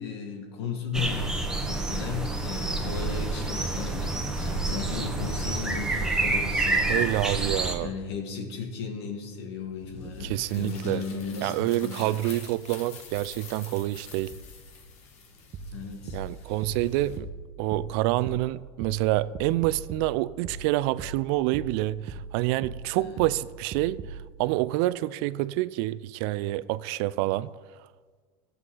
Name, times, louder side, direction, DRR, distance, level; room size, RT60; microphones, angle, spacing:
voice 1, 0.0-1.4 1.6-7.1 7.8-12.4 15.7-16.2 22.9-23.2, left 5 dB, 85° left, 2.1 m, -35 dB
sound 1, 0.9-7.7, right 2 dB, 5° right, 1.5 m, -28 dB
voice 2, 6.9-7.9 10.2-11.0 11.4-14.4 16.1-17.3 17.6-24.0 24.4-27.5, right 17 dB, 65° right, 0.4 m, -27 dB
sound 2, 9.8-17.2, left 4 dB, 55° left, 1.6 m, -46 dB
sound 3, 15.5-24.3, right 4 dB, 40° right, 1.0 m, -40 dB
14.5 x 7.9 x 3.9 m
supercardioid pair, 115°, 13 cm